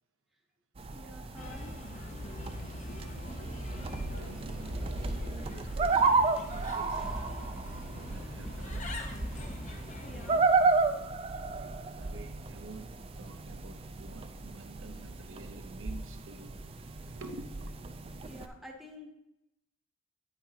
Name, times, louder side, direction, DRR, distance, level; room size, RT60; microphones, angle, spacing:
sound 1, 0.8-18.5, right 3 dB, 25° right, 0.3 m, -33 dB
voice 1, 0.9-1.7 7.0-7.2 10.0-10.4 18.2-19.1, left 1 dB, ahead, 1 dB, 0.8 m, -49 dB
Bird, 1.4-10.4, left 1 dB, 35° left, 0.6 m, -42 dB
voice 2, 3.3-9.0 10.9-11.0 11.3-16.6 17.1-17.8 18.1-18.3, right 2 dB, 65° right, 7 dB, 0.7 m, -50 dB
8.9 x 6.0 x 2.8 m, 0.86 s
head